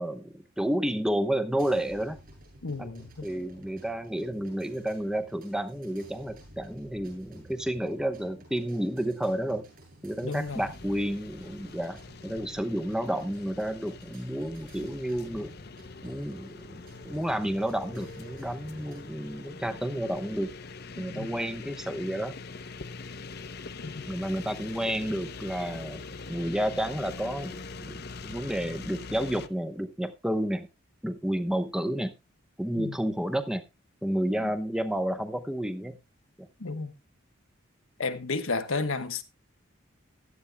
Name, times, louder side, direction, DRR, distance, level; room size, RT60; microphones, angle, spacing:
voice 1, 0.0-2.2 2.8-9.6 10.0-15.5 16.0-20.5 21.0-22.3 24.0-26.0 26.3-30.7 31.0-32.1 32.6-33.6 34.0-36.0 36.4-36.5, right 1 dB, 5° right, 0.9 m, -31 dB
sound 1, 1.6-19.0, right 1 dB, 45° right, 7.6 m, -53 dB
voice 2, 2.6-3.3 10.2-10.6 21.1-21.3 23.8-24.0 32.8-33.0 34.4-34.5 36.6-36.9 38.0-39.2, left 3 dB, 85° left, 1.2 m, -32 dB
sound 2, 10.5-29.5, left 4 dB, 50° left, 0.7 m, -43 dB
16.0 x 11.5 x 2.3 m
head